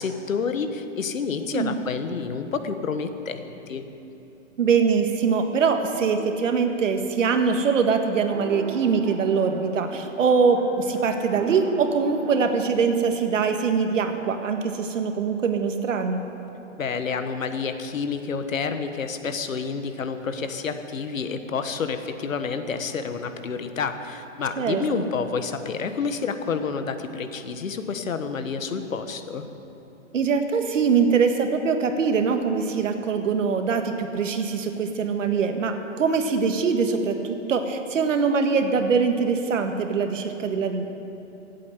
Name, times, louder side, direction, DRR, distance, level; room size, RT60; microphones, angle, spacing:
voice 1, 0.0-3.8 16.8-29.5, left 5 dB, 90° left, 9 dB, 1.3 m, -29 dB
voice 2, 4.6-16.2 24.6-24.8 30.1-40.8, right 5 dB, 75° right, 6 dB, 1.7 m, -23 dB
sound 1, 7.2-12.7, right 7 dB, 40° right, 1.5 m, -39 dB
15.5 x 8.5 x 8.1 m, 2.9 s
hypercardioid pair, 140°, 39 cm